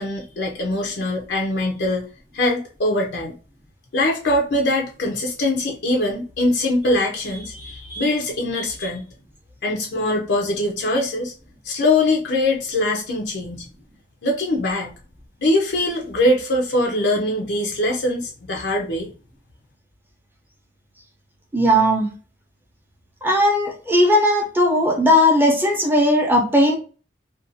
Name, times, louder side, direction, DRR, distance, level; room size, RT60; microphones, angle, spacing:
voice 1, 0.0-2.1 2.3-3.4 3.9-9.0 9.6-11.3 11.6-13.7 14.2-14.9 15.4-19.1, left 1 dB, 65° left, 0 dB, 0.5 m, -22 dB
voice 2, 21.5-22.1 23.2-26.8, equal, 10° right, 0 dB, 0.6 m, -17 dB
2.5 x 2.2 x 2.6 m, 0.38 s
head